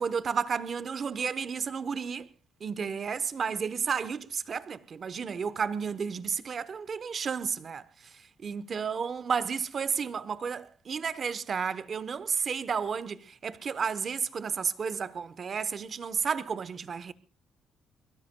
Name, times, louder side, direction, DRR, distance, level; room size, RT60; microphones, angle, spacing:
voice 1, 0.0-2.3 2.6-7.8 8.4-17.1, right 6 dB, 40° right, 0.9 m, -32 dB
23.0 x 23.0 x 2.3 m
cardioid pair, 135°, 0 cm